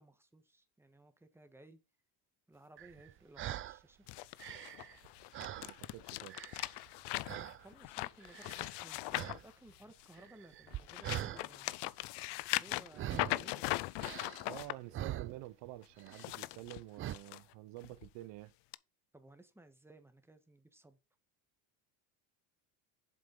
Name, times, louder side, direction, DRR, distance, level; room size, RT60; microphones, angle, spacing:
voice 1, 0.0-1.8 2.5-4.1 7.4-11.7 12.5-13.8 19.1-21.0, right 1 dB, 5° right, 1.5 m, -59 dB
sound 1, 2.8-3.8 4.2-6.0 6.3-6.9 7.2-7.7 8.2-8.8 9.1-9.4 9.7-11.4 12.9-13.5 14.0-15.7 16.0-16.3 17.0-17.2, right 12 dB, 30° right, 0.3 m, -43 dB
sound 2, 4.1-10.2 10.7-14.7 16.0-17.4 17.8-18.1 18.7-18.8, left 20 dB, 55° left, 0.6 m, -40 dB
voice 2, 5.4-6.4 14.5-18.5, right 17 dB, 60° right, 0.7 m, -49 dB
7.7 x 5.2 x 5.3 m
supercardioid pair, 100°, 50 cm